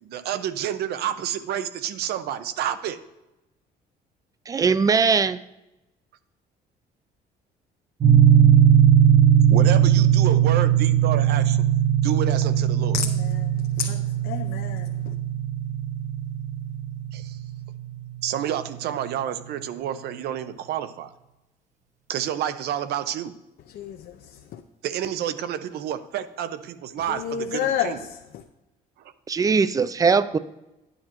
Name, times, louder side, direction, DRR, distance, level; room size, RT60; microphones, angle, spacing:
voice 1, 0.0-3.0 9.5-11.6 12.0-13.0 17.1-17.4 18.2-21.1 22.1-23.3 24.8-28.0, right 10 dB, 70° right, 0.7 m, -29 dB
voice 2, 4.5-5.4 29.3-30.4, right 5 dB, 20° right, 0.4 m, -20 dB
sound 1, 8.0-18.2, right 9 dB, 45° right, 1.2 m, -19 dB
voice 3, 12.9-13.5 13.8-14.9 23.7-24.1 24.5-24.6 27.1-28.0, left 9 dB, 65° left, 0.6 m, -29 dB
11.0 x 9.8 x 3.0 m
cardioid pair, 110°, 17 cm